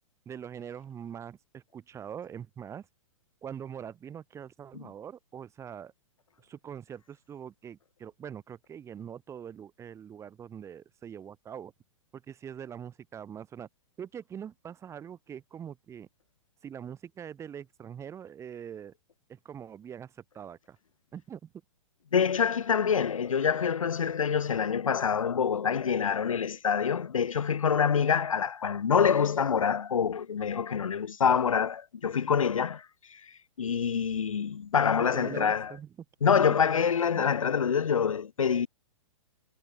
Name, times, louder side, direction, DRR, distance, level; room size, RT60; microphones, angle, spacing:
voice 1, 0.2-2.9 3.4-5.9 6.4-11.7 12.1-13.7 14.0-16.1 16.6-18.9 19.3-20.8 21.1-21.5 35.0-35.9 36.3-36.6 37.1-37.3, right 8 dB, 15° right, 1.5 m, -43 dB
voice 2, 22.1-33.2 33.6-35.7 36.2-38.7, left 7 dB, 85° left, 0.4 m, -26 dB
figure-of-eight pair, 115°, 17 cm